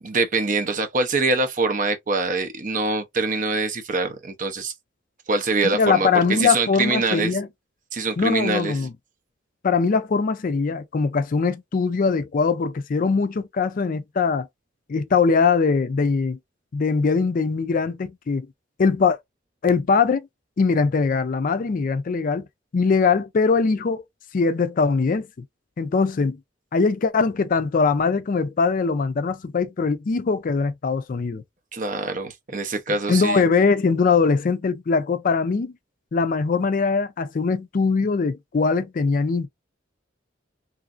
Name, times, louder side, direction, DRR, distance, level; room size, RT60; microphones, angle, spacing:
voice 1, 0.0-4.7 5.3-7.4 7.9-8.8 31.7-33.4, right 3 dB, 45° right, 0.7 m, -24 dB
voice 2, 5.7-7.5 8.2-8.9 9.6-14.5 14.9-16.4 16.7-18.5 18.8-19.2 19.6-20.3 20.6-22.5 22.7-24.0 24.3-25.3 25.8-26.4 26.7-31.4 33.1-35.7 36.1-39.5, left 4 dB, 45° left, 0.4 m, -21 dB
3.1 x 2.6 x 2.4 m
head